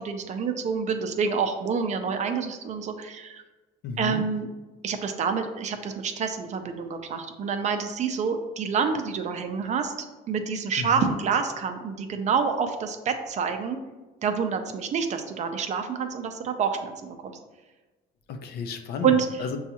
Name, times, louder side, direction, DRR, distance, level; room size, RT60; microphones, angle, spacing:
voice 1, 0.0-3.4 4.0-4.5 4.8-9.9 10.3-13.8 14.2-17.4 19.0-19.4, right 6 dB, 45° right, 6 dB, 0.5 m, -27 dB
voice 2, 3.8-4.2 10.8-11.1 18.3-19.6, left 5 dB, 70° left, 6 dB, 0.5 m, -33 dB
6.0 x 2.3 x 2.8 m, 1.2 s
cardioid pair, 110°, 17 cm